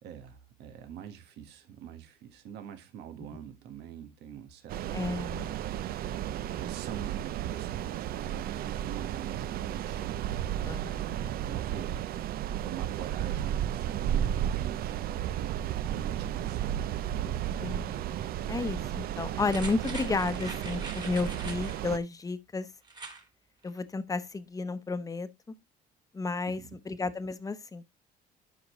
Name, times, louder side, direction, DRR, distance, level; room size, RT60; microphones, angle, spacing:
voice 1, 0.0-5.0 5.6-10.1 11.1-12.1 12.6-16.7 17.0-17.6 26.6-26.7, right 9 dB, 85° right, 1.5 m, -45 dB
sound 1, 4.7-22.0, right 11 dB, 60° right, 0.5 m, -33 dB
voice 2, 4.9-5.6 10.6-11.1 17.6-18.0 18.5-22.7 23.6-25.3 26.1-27.8, left 3 dB, 20° left, 0.9 m, -32 dB
sound 2, 19.5-21.8 22.8-23.2 23.6-23.7, right 3 dB, 25° right, 2.1 m, -43 dB
12.0 x 5.2 x 3.1 m
cardioid pair, 110°, 17 cm